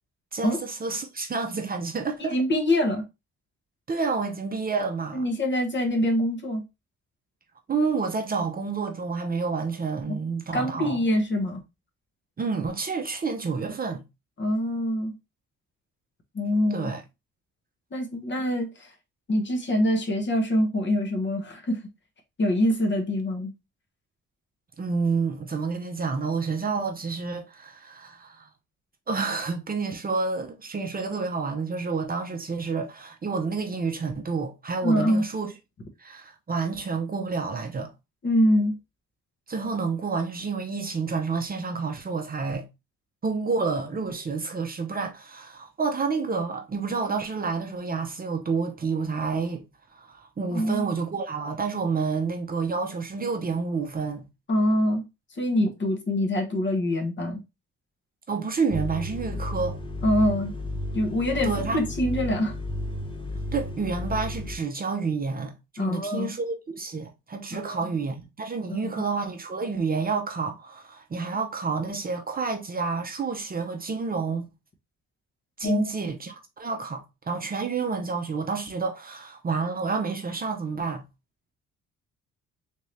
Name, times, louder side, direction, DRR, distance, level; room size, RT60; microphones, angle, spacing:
voice 1, 0.3-2.4 3.9-5.2 7.7-11.0 12.4-14.0 16.7-17.0 24.8-28.5 29.1-35.5 36.0-37.9 39.5-42.7 43.2-49.6 49.9-54.2 58.3-59.8 61.4-61.8 63.5-74.5 75.6-81.0, right 4 dB, 30° right, 0.7 m, -29 dB
voice 2, 2.3-3.0 5.1-6.6 10.1-10.2 10.5-11.6 14.4-15.1 16.3-16.9 17.9-18.9 19.3-21.8 22.4-23.5 34.8-35.2 38.2-38.8 50.5-50.8 54.5-55.0 55.4-57.4 60.0-60.5 60.9-62.5 65.8-66.3 67.5-67.9 68.7-69.0 75.6-75.8, left 1 dB, 40° left, 1.1 m, -24 dB
sound 1, 58.7-64.6, left 1 dB, 15° left, 0.9 m, -33 dB
3.7 x 2.7 x 3.2 m
cardioid pair, 90°, 30 cm